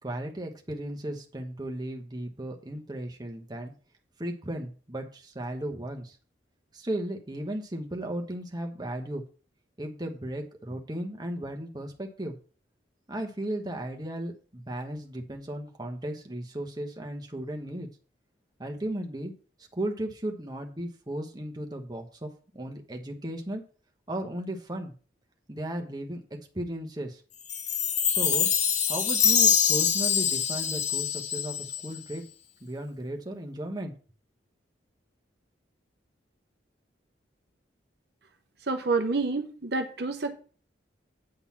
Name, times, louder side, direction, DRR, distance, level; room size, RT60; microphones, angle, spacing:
voice 1, 0.0-3.7 4.2-6.2 6.7-9.2 9.8-12.4 13.1-17.9 18.6-19.3 19.7-23.6 24.1-24.9 25.5-26.2 26.5-27.2 28.1-28.5 28.9-32.2 32.6-33.9, right 1 dB, 20° right, 2 dB, 1.2 m, -35 dB
Chime, 27.5-32.0, left 8 dB, 40° left, 0.8 m, -25 dB
voice 2, 38.6-40.4, right 3 dB, 55° right, 5 dB, 0.9 m, -28 dB
8.9 x 4.0 x 7.2 m, 0.39 s
head